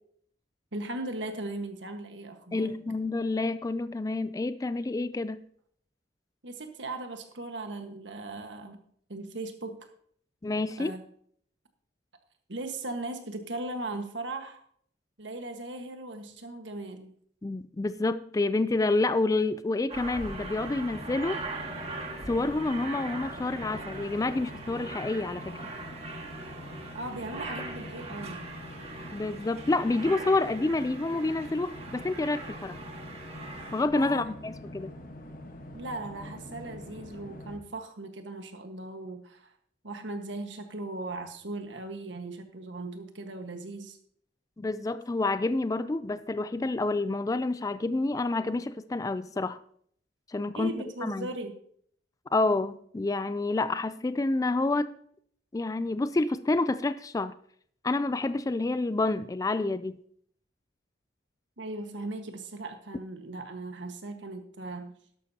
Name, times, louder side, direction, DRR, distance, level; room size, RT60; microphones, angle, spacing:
voice 1, 0.7-2.8 6.4-8.8 9.1-9.9 10.8-11.0 12.5-14.6 15.2-17.1 26.9-28.4 33.9-34.2 35.7-39.5 39.8-44.0 50.5-51.6 61.6-64.9, right 2 dB, 80° right, 1.4 m, -38 dB
voice 2, 2.5-5.4 10.4-10.9 17.4-21.5 22.3-25.6 29.1-32.8 33.7-34.9 44.6-49.6 50.3-50.7 51.0-51.3 52.3-54.9 55.5-57.3 57.8-60.0, left 2 dB, 20° left, 0.3 m, -28 dB
Aircraft, 19.9-33.8, right 3 dB, 35° right, 1.8 m, -41 dB
sound 1, 20.2-37.6, left 1 dB, 50° left, 1.3 m, -44 dB
12.5 x 11.5 x 2.8 m
head